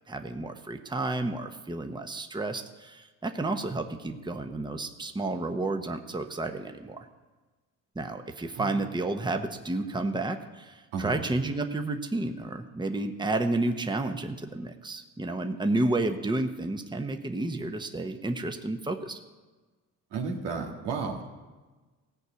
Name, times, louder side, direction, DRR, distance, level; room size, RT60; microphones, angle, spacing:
voice 1, 0.1-7.1 7.9-19.2, right 2 dB, 10° right, 6 dB, 1.0 m, -31 dB
voice 2, 20.1-21.3, right 5 dB, 90° right, 1 dB, 1.8 m, -33 dB
16.0 x 5.5 x 8.3 m, 1.3 s
supercardioid pair, 80°, 39 cm